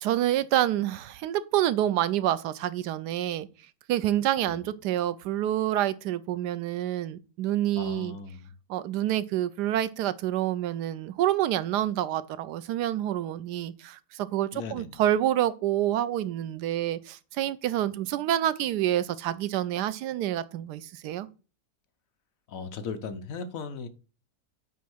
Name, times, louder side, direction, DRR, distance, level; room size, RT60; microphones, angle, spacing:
voice 1, 0.0-3.5 3.9-8.2 8.7-21.3, right 12 dB, 90° right, 1.2 m, -27 dB
voice 2, 7.8-8.5 14.5-15.0 22.5-23.9, left 5 dB, 60° left, 1.1 m, -37 dB
9.2 x 3.2 x 6.1 m
omnidirectional pair, 1.7 m